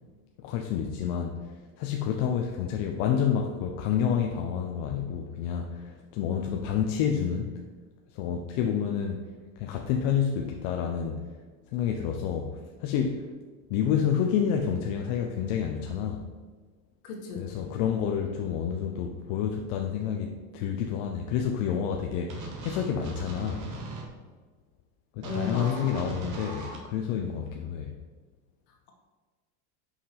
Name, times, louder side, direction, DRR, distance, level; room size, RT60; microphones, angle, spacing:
voice 1, 0.4-1.4 1.8-7.5 8.1-9.2 9.6-11.2 11.7-12.5 12.8-13.3 13.7-16.2 17.4-23.6 25.2-27.9, left 8 dB, 60° left, 2 dB, 0.8 m, -29 dB
voice 2, 17.0-17.7 25.2-26.0, left 4 dB, 75° left, 0 dB, 2.0 m, -35 dB
sound 1, 22.3-24.0 25.2-26.8, right 2 dB, 40° right, 1.7 m, -38 dB
5.7 x 5.4 x 5.0 m, 1.4 s
supercardioid pair, 140°, 45 cm